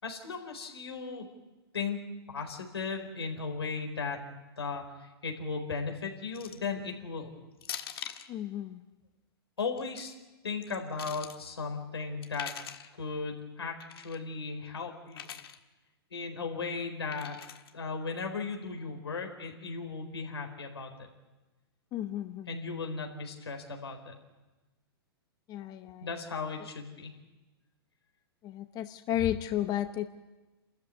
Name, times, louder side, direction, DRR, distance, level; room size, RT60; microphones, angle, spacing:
voice 1, 0.0-1.3 1.7-2.0 2.3-4.2 4.6-7.3 9.6-10.1 10.4-12.6 13.0-15.3 16.1-17.4 17.7-20.9 22.5-24.2 26.0-27.1, left 4 dB, 85° left, 3 dB, 4.4 m, -36 dB
sound 1, 6.3-6.7 7.6-8.3 9.6-10.0 10.6-11.4 12.2-12.9 13.8-14.2 15.1-15.6 17.1-17.7, left 9 dB, 70° left, 1.6 m, -42 dB
voice 2, 8.3-8.8 21.9-22.6 25.5-26.1 28.4-30.1, left 12 dB, 30° left, 9 dB, 0.9 m, -33 dB
28.0 x 14.0 x 9.7 m, 1.2 s
hypercardioid pair, 115°, 13 cm